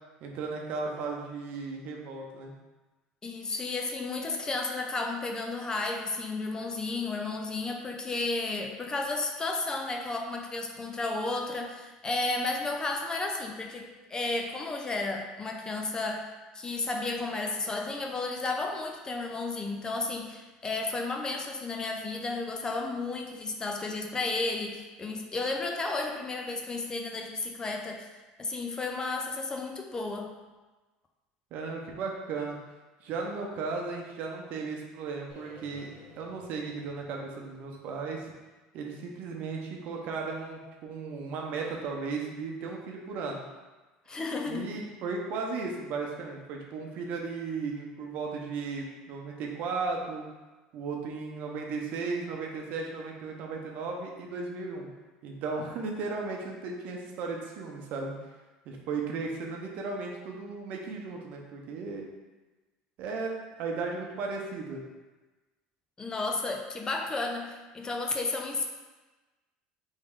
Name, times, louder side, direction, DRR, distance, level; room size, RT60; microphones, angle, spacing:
voice 1, 0.2-2.5 31.5-32.6 33.0-38.3 38.7-43.5 44.4-50.3 50.7-54.9 55.2-58.1 58.7-62.1 63.0-63.3 63.6-64.8, right 4 dB, 60° right, 0 dB, 0.8 m, -35 dB
voice 2, 3.2-16.3 16.5-28.1 28.4-30.3 44.1-44.8 66.0-68.7, left 3 dB, 25° left, 3 dB, 0.5 m, -33 dB
sound 1, 35.3-39.3, left 2 dB, 80° left, 0.9 m, -55 dB
3.6 x 3.2 x 3.6 m, 1.2 s
supercardioid pair, 100°, 3 cm